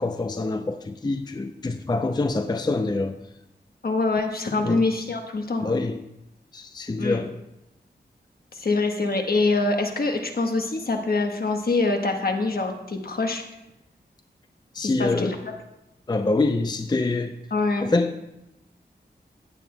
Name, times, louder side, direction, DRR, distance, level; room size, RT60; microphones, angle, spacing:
voice 1, 0.0-3.1 4.6-4.8 5.6-6.0 6.5-7.3 14.8-15.3 16.1-17.3 17.8-18.1, left 3 dB, 25° left, 7 dB, 0.5 m, -25 dB
voice 2, 3.8-5.7 7.0-7.2 8.5-13.4 14.8-15.5 17.5-17.9, left 3 dB, 60° left, 4 dB, 1.2 m, -25 dB
16.5 x 8.4 x 2.2 m, 0.88 s
wide cardioid pair, 80°, 18 cm